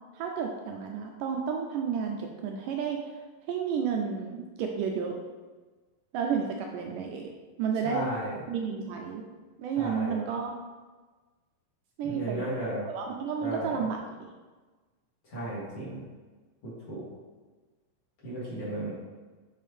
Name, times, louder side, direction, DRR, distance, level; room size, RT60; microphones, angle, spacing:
voice 1, 0.1-3.1 3.5-5.2 6.1-7.3 7.6-8.1 8.5-9.2 9.6-10.6 12.0-12.6 12.9-14.3, right 6 dB, 80° right, 2 dB, 2.0 m, -31 dB
voice 2, 7.8-8.4 9.8-10.2 12.0-12.9 13.4-13.8 15.3-16.0 16.6-17.0 18.2-18.9, right 1 dB, 45° left, -9 dB, 2.6 m, -35 dB
7.3 x 4.6 x 3.3 m, 1.3 s
omnidirectional pair, 4.0 m